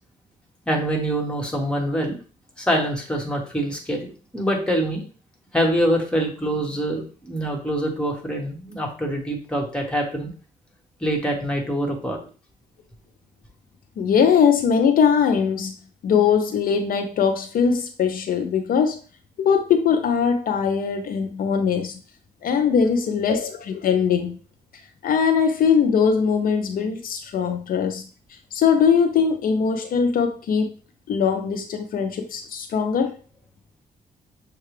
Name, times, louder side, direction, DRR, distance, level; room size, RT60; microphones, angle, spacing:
voice 1, 0.7-2.2 2.6-5.0 5.5-10.3 11.0-12.2 22.6-22.7 27.4-27.5, equal, 5° left, 1.3 m, -25 dB
voice 2, 14.0-15.7 16.0-19.0 19.4-22.0 22.4-24.4 24.7-28.0 28.5-30.7 31.1-33.2, left 6 dB, 65° left, 0.5 m, -21 dB
6.4 x 2.3 x 3.2 m
cardioid pair, 100°, 16 cm